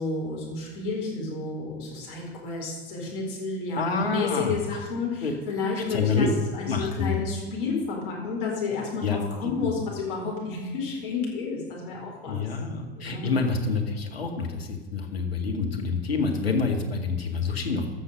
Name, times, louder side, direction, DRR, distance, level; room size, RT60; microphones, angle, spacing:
voice 1, 0.0-12.5 12.9-13.4, left 4 dB, 60° left, -2 dB, 4.3 m, -31 dB
voice 2, 3.8-4.8 5.2-5.3 5.8-6.3 6.7-7.2 9.0-9.7 12.3-18.0, left 4 dB, 75° left, 2 dB, 1.9 m, -27 dB
14.5 x 6.3 x 6.4 m, 1.3 s
figure-of-eight pair, 85°, 31 cm